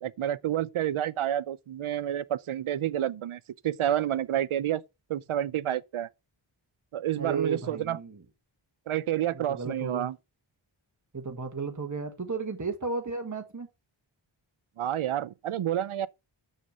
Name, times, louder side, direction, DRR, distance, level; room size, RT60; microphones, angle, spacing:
voice 1, 0.0-4.8 5.1-6.1 6.9-8.0 8.9-10.2 14.8-16.1, right 11 dB, 80° right, 0.6 m, -29 dB
voice 2, 7.2-8.2 9.3-10.1 11.1-13.7, right 4 dB, 35° right, 1.5 m, -34 dB
6.6 x 6.4 x 5.5 m
wide cardioid pair, 65°, 49 cm